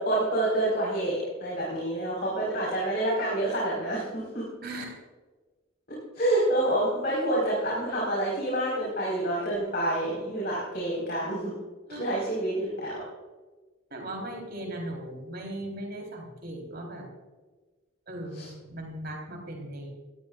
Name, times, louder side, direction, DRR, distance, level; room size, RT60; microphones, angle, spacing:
voice 1, 0.0-4.4 6.1-11.5 12.0-13.0 18.3-18.5, right 1 dB, 50° left, -6 dB, 4.9 m, -28 dB
voice 2, 4.6-4.9 11.9-12.1 13.9-17.1 18.1-19.9, right 1 dB, 50° right, 0 dB, 4.2 m, -38 dB
20.5 x 13.5 x 2.5 m, 1.3 s
head